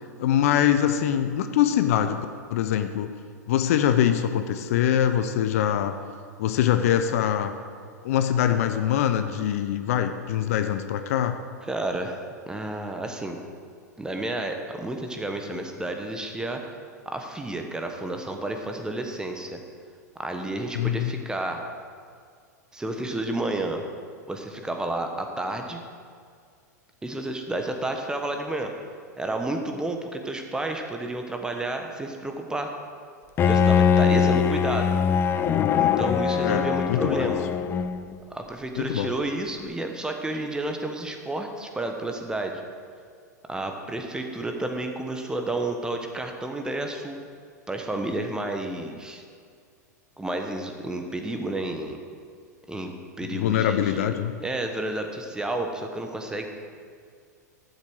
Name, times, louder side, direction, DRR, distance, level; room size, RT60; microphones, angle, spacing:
voice 1, 0.2-2.2 2.5-3.1 3.5-5.9 6.4-7.5 8.0-11.3 20.7-21.1 36.4-37.3 38.8-39.1 53.3-54.3, left 10 dB, 55° left, 9 dB, 0.8 m, -23 dB
voice 2, 11.7-12.2 12.5-13.4 14.0-16.6 17.0-19.6 20.2-21.7 22.7-23.8 24.3-25.8 27.0-28.7 29.2-32.7 33.4-35.0 35.7-37.5 38.3-42.6 43.5-47.2 47.7-49.2 50.2-52.0 52.7-52.9 53.2-54.1 54.4-56.5, right 2 dB, 10° right, 4 dB, 1.2 m, -31 dB
Bowed string instrument, 33.4-38.2, left 7 dB, 25° left, 0.5 m, -22 dB
12.0 x 7.9 x 6.3 m, 2.1 s
figure-of-eight pair, 95°, 9 cm